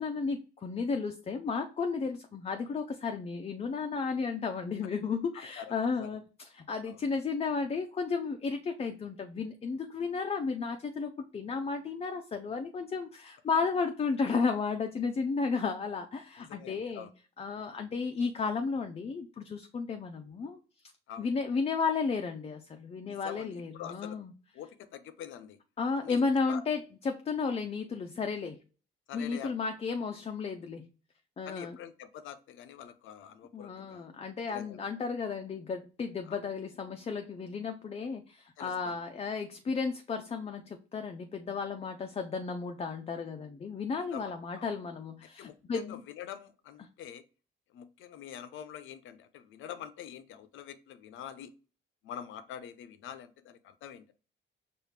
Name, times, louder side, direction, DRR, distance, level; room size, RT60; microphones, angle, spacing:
voice 1, 0.0-17.1 17.4-20.6 21.2-24.3 25.8-28.6 29.1-30.9 31.4-31.8 33.5-46.0 46.8-46.9, left 5 dB, 30° left, 0.5 m, -33 dB
voice 2, 5.6-6.1 6.8-7.0 16.4-17.1 21.1-21.3 23.0-24.2 24.5-25.6 26.0-26.6 29.1-29.5 31.5-34.0 34.5-34.8 36.3-36.4 38.6-38.9 44.1-44.7 45.4-47.2 47.7-51.5 52.0-54.1, left 9 dB, 80° left, 0.5 m, -45 dB
4.8 x 2.5 x 3.3 m
cardioid pair, 90°, 20 cm